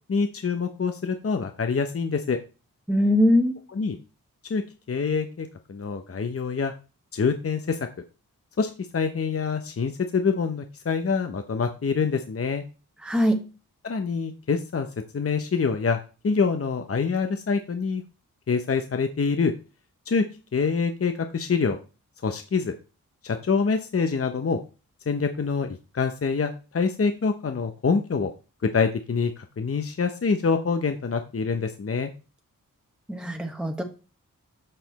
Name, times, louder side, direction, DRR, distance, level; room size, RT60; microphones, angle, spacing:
voice 1, 0.1-2.4 3.7-4.0 4.4-4.6 4.9-6.7 7.1-7.9 8.6-12.6 13.8-14.9 15.1-18.0 18.5-19.5 20.1-20.2 20.5-21.8 22.2-22.8 23.2-24.6 25.1-25.7 25.9-28.3 28.6-32.1, left 5 dB, 40° left, 7 dB, 0.8 m, -25 dB
voice 2, 2.9-3.5 13.0-13.4 33.1-33.8, left 1 dB, 5° right, 3 dB, 1.3 m, -21 dB
6.6 x 5.9 x 4.1 m, 0.33 s
cardioid pair, 55°, 34 cm